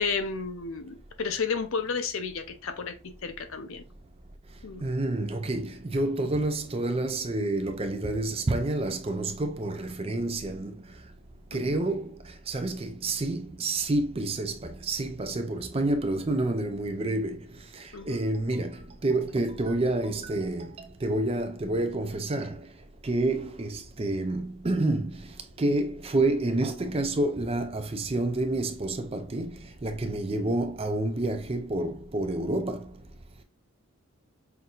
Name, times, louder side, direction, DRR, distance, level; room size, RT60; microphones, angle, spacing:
voice 1, 0.0-3.8 4.6-4.8 11.5-11.8 17.9-18.2, left 5 dB, 65° left, 0.6 m, -32 dB
voice 2, 4.8-10.8 11.5-12.2 12.5-17.4 17.7-22.6 23.0-25.2 25.6-32.9, right 2 dB, 25° right, 0.5 m, -29 dB
5.7 x 2.7 x 2.4 m
head